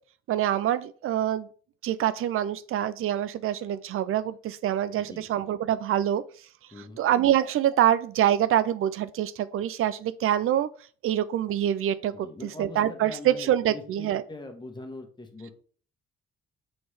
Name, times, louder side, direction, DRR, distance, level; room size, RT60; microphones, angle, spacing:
voice 1, 0.3-1.5 1.8-6.2 7.0-10.7 11.0-14.2, right 11 dB, 45° right, 0.5 m, -25 dB
voice 2, 5.0-5.3 6.7-7.0 12.1-15.5, left 2 dB, 15° left, 1.4 m, -42 dB
6.6 x 4.2 x 3.4 m
figure-of-eight pair, 40°, 31 cm